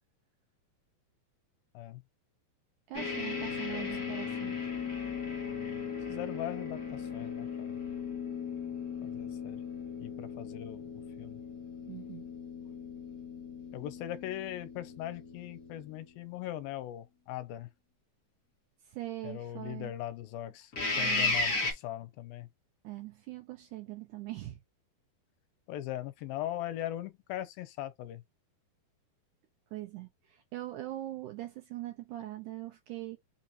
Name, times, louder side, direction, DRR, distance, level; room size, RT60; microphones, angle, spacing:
sound 1, 2.9-16.0 20.7-21.7, left 4 dB, 50° left, 1.1 m, -36 dB
voice 1, 2.9-4.6 11.9-12.3 18.9-19.9 20.9-21.4 22.8-24.6 29.7-33.2, right 15 dB, 80° right, 1.8 m, -42 dB
voice 2, 6.1-7.8 9.0-9.6 10.0-10.8 11.2-11.4 13.7-17.7 19.2-20.7 21.0-22.5 25.7-28.2, left 13 dB, 85° left, 2.4 m, -40 dB
5.7 x 2.5 x 2.9 m
omnidirectional pair, 4.3 m